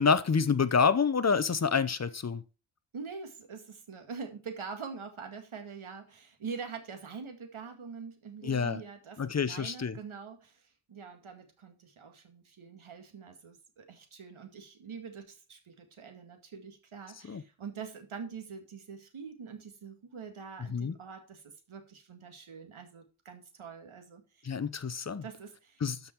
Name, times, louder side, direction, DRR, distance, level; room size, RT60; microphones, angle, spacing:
voice 1, 0.0-2.4 8.4-8.8 9.2-10.0 17.3-17.4 20.7-20.9 24.4-25.2 25.8-26.0, left 5 dB, 35° left, 0.7 m, -27 dB
voice 2, 2.9-24.5 25.2-25.8, right 5 dB, 75° right, 2.1 m, -44 dB
13.0 x 5.3 x 4.5 m
wide cardioid pair, 115°, 49 cm